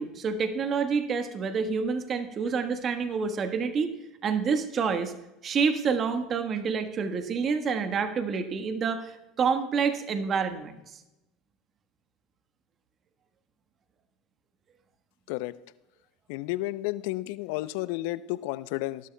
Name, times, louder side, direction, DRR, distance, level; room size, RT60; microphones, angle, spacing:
voice 1, 0.0-3.9 4.2-5.1 5.4-10.8, right 5 dB, 40° right, 8 dB, 1.3 m, -28 dB
voice 2, 16.3-19.0, left 18 dB, 70° left, 17 dB, 0.5 m, -31 dB
20.0 x 12.0 x 2.2 m, 0.95 s
hypercardioid pair, 80°, 0 cm